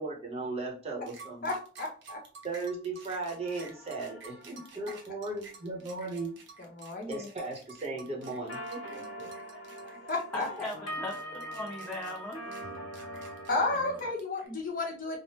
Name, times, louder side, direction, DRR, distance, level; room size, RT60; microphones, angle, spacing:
voice 1, 0.0-1.5 2.4-6.3 7.1-9.3, right 3 dB, 35° right, -1 dB, 0.8 m, -37 dB
sound 1, 1.1-14.5, right 5 dB, 65° right, 0.7 m, -51 dB
voice 2, 1.4-2.2 6.6-7.3 10.1-10.5 13.5-15.2, left 2 dB, 45° left, 0 dB, 0.8 m, -32 dB
sound 2, 3.4-5.5 8.2-14.1, equal, 65° left, 1.3 m, -43 dB
voice 3, 10.0-12.5 13.0-13.3, left 1 dB, 10° left, -3 dB, 0.5 m, -40 dB
3.3 x 2.0 x 2.8 m, 0.38 s
head